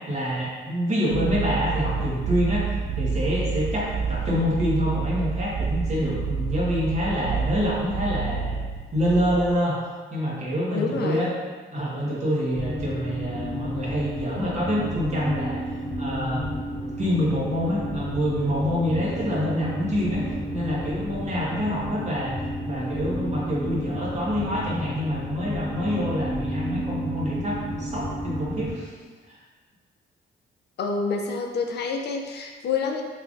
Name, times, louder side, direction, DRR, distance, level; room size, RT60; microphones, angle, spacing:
voice 1, 0.1-2.6 3.0-8.5 8.9-9.8 10.1-11.3 11.7-15.6 16.0-16.5 17.0-20.2 20.5-28.9 29.3-29.4, equal, 35° right, -6 dB, 1.2 m, -26 dB
sound 1, 1.1-9.6, right 5 dB, 50° right, 0.4 m, -29 dB
voice 2, 10.7-11.3 30.8-33.0, left 4 dB, 60° left, 2 dB, 0.4 m, -27 dB
sound 2, 12.5-28.7, equal, 10° left, 0.9 m, -32 dB
3.6 x 3.2 x 2.5 m, 1.4 s
cardioid pair, 90°, 20 cm